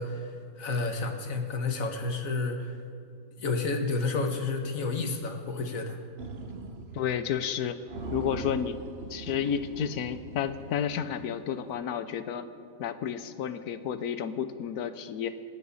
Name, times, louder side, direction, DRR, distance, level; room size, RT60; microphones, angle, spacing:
voice 1, 0.0-2.7 3.4-6.0, left 3 dB, 65° left, 5 dB, 1.7 m, -30 dB
sound 1, 6.2-7.2 7.5-7.6 7.9-11.3, right 3 dB, 50° right, 1.0 m, -41 dB
voice 2, 6.9-7.8 8.1-8.8 9.1-12.5 12.8-15.3, left 8 dB, 85° left, 12 dB, 1.3 m, -31 dB
28.0 x 9.3 x 4.1 m, 2.4 s
omnidirectional pair, 1.6 m